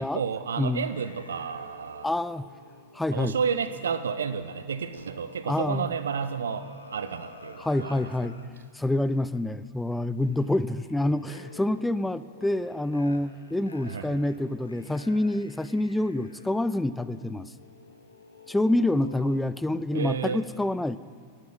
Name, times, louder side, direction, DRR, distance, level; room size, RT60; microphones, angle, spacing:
voice 1, 0.0-2.1 3.1-8.1 8.4-8.6 13.9-14.3 19.9-20.4, right 6 dB, 65° right, 12 dB, 0.5 m, -31 dB
voice 2, 0.6-0.9 2.0-2.5 2.9-3.3 5.5-5.9 7.6-8.3 8.7-17.5 18.5-21.0, left 1 dB, 5° left, 16 dB, 0.4 m, -27 dB
sound 1, 0.9-8.5 9.4-9.6 10.3-19.4, left 3 dB, 80° left, 1.0 m, -50 dB
11.5 x 8.9 x 9.2 m, 2.2 s
figure-of-eight pair, 90°, 0 cm